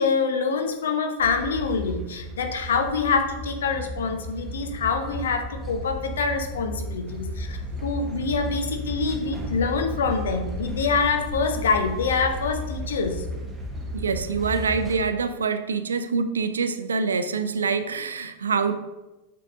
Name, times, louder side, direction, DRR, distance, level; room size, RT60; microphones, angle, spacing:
voice 1, 0.0-13.3, left 5 dB, 65° left, 6 dB, 0.8 m, -25 dB
sound 1, 1.2-15.0, equal, 15° right, 1.0 m, -34 dB
voice 2, 13.9-18.7, right 5 dB, 70° right, 11 dB, 0.4 m, -25 dB
6.7 x 6.4 x 2.5 m, 1.1 s
figure-of-eight pair, 90°, 0 cm